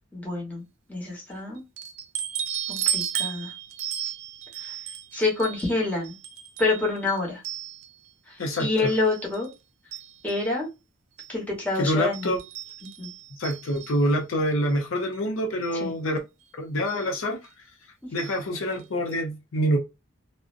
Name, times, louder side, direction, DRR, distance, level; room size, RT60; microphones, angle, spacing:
voice 1, 0.1-0.6 0.9-1.6 2.7-3.5 4.6-4.7 5.1-6.2 6.6-7.4 8.6-9.5 10.2-10.7 11.3-12.3 13.0-13.1 15.8-15.9 18.2-18.3, left 3 dB, 10° left, 0.9 m, -27 dB
sound 1, 1.8-8.1 8.5-9.5 9.9-10.5 11.2-11.3 11.6-11.7 12.1-14.1 15.1-15.2 15.6-15.7 16.9-17.1 18.2-18.4 18.7-18.8 19.1-19.2, right 10 dB, 85° right, 0.5 m, -34 dB
voice 2, 11.8-12.4 13.4-16.2 16.6-17.4 18.1-19.8, equal, 75° left, 0.5 m, -26 dB
2.5 x 2.0 x 2.4 m
head